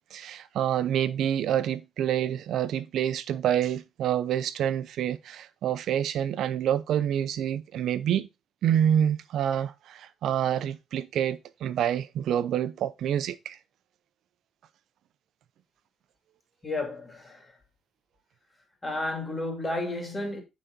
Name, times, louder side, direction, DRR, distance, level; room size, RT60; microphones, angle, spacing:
voice 1, 0.1-8.3 8.6-13.6, right 10 dB, 75° right, 0.6 m, -27 dB
voice 2, 16.6-17.5 18.8-20.4, left 2 dB, 25° left, 2.6 m, -32 dB
8.9 x 4.1 x 3.8 m
cardioid pair, 90°, 0 cm